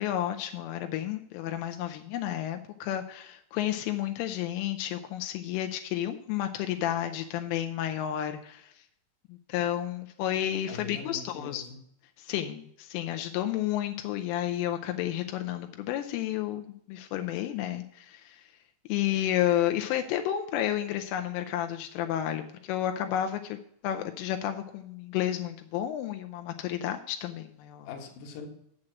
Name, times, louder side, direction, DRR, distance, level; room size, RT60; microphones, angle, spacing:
voice 1, 0.0-8.7 9.3-11.6 12.2-18.5 18.9-23.6 23.8-27.9, left 12 dB, 85° left, 6 dB, 3.1 m, -31 dB
voice 2, 10.7-11.8 27.9-28.5, left 4 dB, 65° left, 1 dB, 2.2 m, -42 dB
7.7 x 7.3 x 6.2 m, 0.71 s
omnidirectional pair, 5.9 m